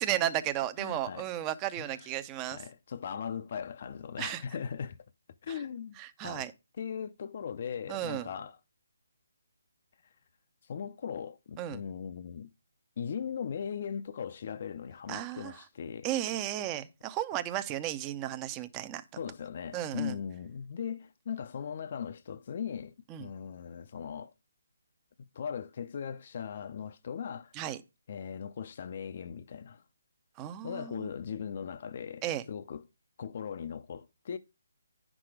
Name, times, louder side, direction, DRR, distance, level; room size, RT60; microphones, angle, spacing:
voice 1, 0.0-2.6 4.2-4.4 5.5-5.6 6.0-6.5 7.9-8.3 11.6-11.8 15.1-15.6 16.0-19.0 19.7-20.2 23.1-23.3 27.5-27.8 30.4-31.1 32.2-32.4, right 12 dB, 15° right, 0.6 m, -34 dB
voice 2, 0.8-1.3 1.8-2.2 2.5-5.0 5.4-6.5 6.8-8.6 10.6-12.5 13.0-16.1 19.2-22.9 23.2-24.3 25.2-27.5 28.1-29.8 30.6-32.8 33.2-34.4, left 7 dB, 45° left, 0.6 m, -39 dB
9.7 x 6.1 x 4.9 m
hypercardioid pair, 160°, 0 cm